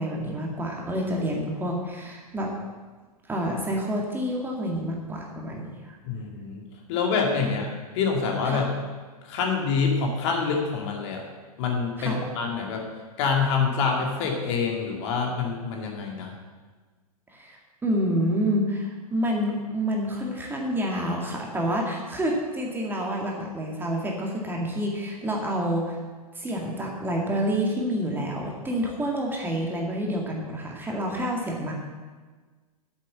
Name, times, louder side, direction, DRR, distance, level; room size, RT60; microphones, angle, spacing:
voice 1, 0.0-2.5 3.3-6.0 7.4-7.5 8.5-8.6 12.0-12.2 17.3-26.0 26.3-31.7, equal, 10° right, -1 dB, 2.0 m, -28 dB
voice 2, 6.1-6.6 6.9-7.7 7.9-8.7 9.2-11.2 11.6-12.9 13.2-16.3, left 5 dB, 45° left, 1 dB, 2.4 m, -26 dB
8.3 x 8.1 x 7.8 m, 1.4 s
figure-of-eight pair, 105°, 20 cm